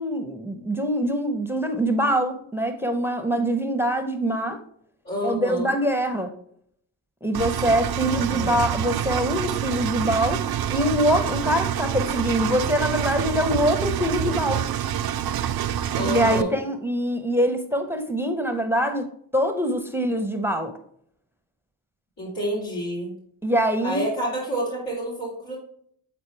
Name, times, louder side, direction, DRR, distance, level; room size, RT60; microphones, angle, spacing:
voice 1, 0.0-4.6 5.2-6.3 7.2-14.6 16.0-19.0 19.3-20.7 23.4-24.0, equal, 5° right, 8 dB, 0.8 m, -24 dB
voice 2, 5.0-5.7 8.1-8.6 15.9-16.6 22.2-23.1 23.8-25.6, right 1 dB, 70° left, -7 dB, 2.9 m, -29 dB
Engine, 7.3-16.4, right 10 dB, 50° right, 0.5 m, -27 dB
8.1 x 4.1 x 3.3 m, 0.66 s
supercardioid pair, 45°, 48 cm